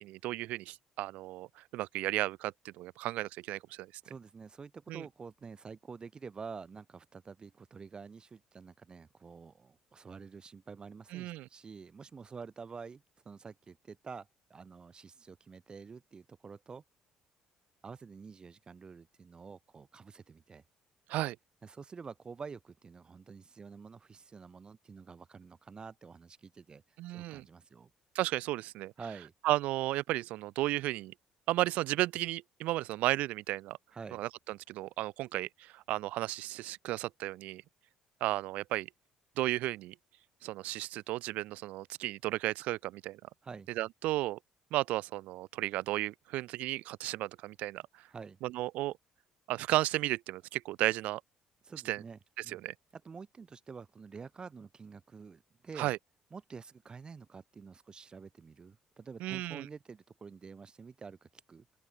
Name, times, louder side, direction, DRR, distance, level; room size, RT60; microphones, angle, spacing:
voice 1, 0.0-3.9 4.9-5.0 11.1-11.5 21.1-21.4 27.0-27.4 28.2-28.9 29.4-31.1 31.5-33.8 34.1-37.6 38.2-38.9 39.4-39.9 40.4-43.2 43.8-44.4 44.7-47.8 48.4-48.9 49.5-51.2 51.9-52.0 52.5-52.7 55.8-56.0 59.2-59.7, right 17 dB, 75° right, 0.4 m, -34 dB
voice 2, 4.0-16.8 17.8-20.6 21.6-27.9 29.0-29.3 33.9-34.2 43.4-43.7 48.1-48.4 51.6-52.6 53.0-56.0 56.3-61.6, right 5 dB, 35° right, 1.3 m, -48 dB
open air
supercardioid pair, 65°, 3 cm